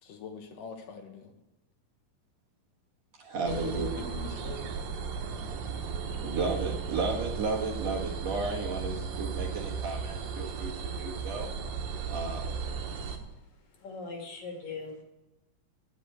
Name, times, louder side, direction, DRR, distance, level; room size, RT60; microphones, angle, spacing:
voice 1, 0.0-1.3 3.4-4.7, left 5 dB, 75° left, 4 dB, 2.8 m, -42 dB
voice 2, 3.2-3.9 6.2-11.5 12.1-12.6, right 3 dB, 55° right, -1 dB, 2.4 m, -33 dB
sound 1, 3.5-13.2, right 6 dB, 85° right, 2.9 m, -35 dB
voice 3, 13.3-15.0, left 4 dB, 60° left, 1 dB, 3.1 m, -41 dB
11.5 x 8.3 x 7.8 m, 0.97 s
omnidirectional pair, 4.0 m